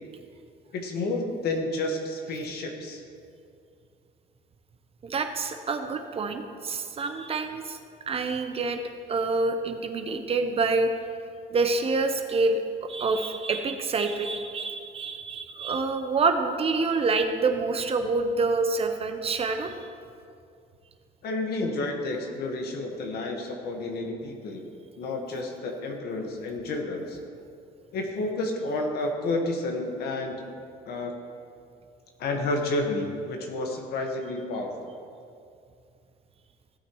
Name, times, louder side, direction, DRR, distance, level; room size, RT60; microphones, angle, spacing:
voice 1, 0.7-3.0 21.2-24.6 25.0-27.2 27.9-30.4 30.9-31.1 32.2-34.7, left 2 dB, 70° left, 2 dB, 1.6 m, -30 dB
voice 2, 5.0-7.8 8.1-8.8 9.1-10.9 11.5-19.7, right 3 dB, 35° right, 6 dB, 0.9 m, -27 dB
16.0 x 8.6 x 3.1 m, 2.5 s
cardioid pair, 110°, 17 cm